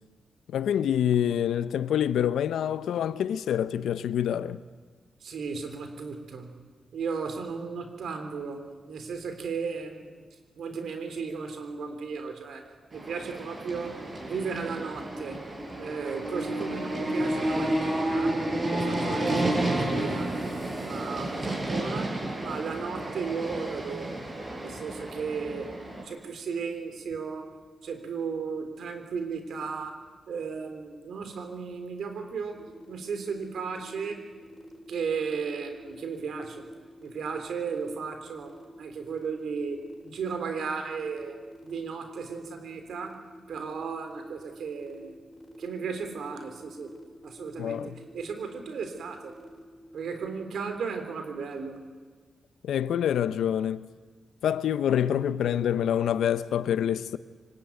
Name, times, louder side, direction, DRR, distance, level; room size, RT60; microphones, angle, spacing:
voice 1, 0.5-4.6 47.6-47.9 52.6-53.9 54.4-57.2, left 9 dB, 90° left, 0.7 m, -26 dB
voice 2, 5.2-6.6 6.9-10.3 10.6-15.4 15.8-18.4 18.7-20.6 20.8-24.3 24.6-25.8 26.0-27.5 27.8-32.6 32.9-34.2 34.9-36.7 37.0-43.2 43.5-45.2 45.6-46.9 47.2-49.4 49.9-51.9, right 5 dB, 80° right, 3.5 m, -35 dB
sound 1, 12.9-26.0, right 1 dB, 40° right, 7.1 m, -31 dB
sound 2, 32.5-50.2, equal, 10° left, 6.4 m, -48 dB
25.0 x 19.0 x 9.4 m
cardioid pair, 60°, 0 cm